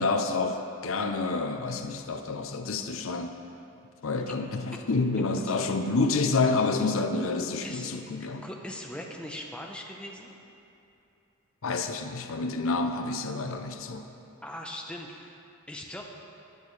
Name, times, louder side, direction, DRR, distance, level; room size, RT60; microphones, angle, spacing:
voice 1, 0.0-3.3 4.0-8.4 11.6-14.1, left 3 dB, 70° left, 7 dB, 0.6 m, -28 dB
voice 2, 7.6-8.1 8.4-10.3 14.4-15.4 15.7-16.1, left 1 dB, 5° left, 0 dB, 0.7 m, -40 dB
18.5 x 8.8 x 3.2 m, 2.7 s
head